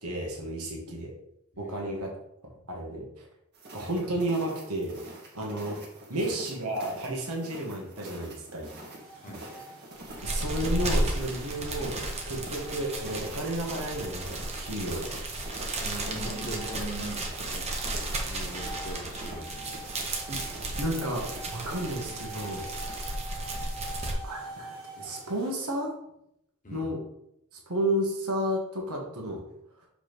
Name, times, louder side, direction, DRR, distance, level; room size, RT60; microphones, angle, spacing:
voice 1, 0.0-1.1 1.6-2.1 2.7-3.3 3.7-5.0 5.3-5.8 6.1-8.7 10.2-15.1 20.3-20.4 20.8-21.2 21.5-22.7 24.2-25.9 26.7-27.0 27.5-29.4 29.8-29.9, right 1 dB, 85° right, 0 dB, 1.6 m, -32 dB
sound 1, 3.5-23.2, right 1 dB, 50° right, 1.6 m, -46 dB
sound 2, 8.6-25.5, right 2 dB, 65° right, 1.3 m, -46 dB
sound 3, 9.9-24.1, right 1 dB, 30° right, 1.0 m, -34 dB
voice 2, 15.8-17.7 18.2-19.8 26.6-26.9, right 1 dB, 35° left, 0 dB, 1.2 m, -40 dB
6.3 x 5.0 x 3.4 m, 0.78 s
head